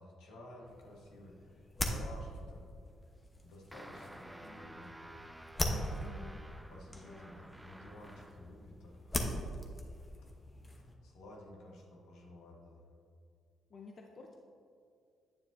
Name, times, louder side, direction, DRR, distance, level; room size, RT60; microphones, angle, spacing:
voice 1, 0.0-2.7 3.4-5.3 6.7-9.3 11.0-12.8, left 1 dB, 85° left, -1 dB, 1.4 m, -53 dB
sound 1, 0.6-11.0, left 1 dB, 20° left, 0.9 m, -41 dB
sound 2, 3.7-8.5, right 1 dB, 5° right, 0.3 m, -52 dB
voice 2, 5.6-6.4 7.0-7.3 13.7-14.3, left 4 dB, 50° left, 1 dB, 0.7 m, -51 dB
9.0 x 7.1 x 2.7 m, 2.4 s
cardioid pair, 90°, 0 cm